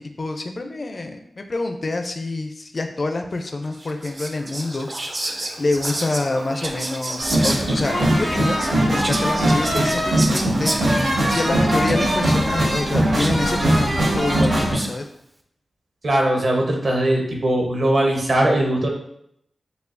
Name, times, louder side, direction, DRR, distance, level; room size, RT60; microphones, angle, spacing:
voice 1, 0.0-4.9 5.6-10.7 11.3-15.1, left 2 dB, 40° left, 5 dB, 0.4 m, -27 dB
Whispering, 3.7-15.0, right 1 dB, 35° right, 0.4 m, -31 dB
sound 1, 7.2-14.8, right 1 dB, 85° right, 1.6 m, -20 dB
voice 2, 16.0-18.9, right 1 dB, 55° right, 0 dB, 0.9 m, -20 dB
6.7 x 2.3 x 2.5 m, 0.73 s
wide cardioid pair, 120°, 0 cm